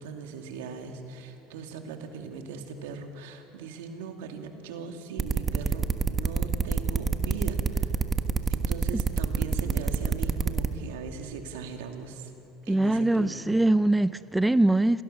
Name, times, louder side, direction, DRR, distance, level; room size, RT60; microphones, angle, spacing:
voice 1, 0.0-8.0 8.5-12.3 12.6-13.6, right 5 dB, 80° right, 2.5 m, -39 dB
sound 1, 5.2-10.7, right 5 dB, 30° right, 1.4 m, -26 dB
voice 2, 12.7-15.0, right 2 dB, 10° right, 0.5 m, -22 dB
27.5 x 18.5 x 6.8 m
hypercardioid pair, 85°, 0 cm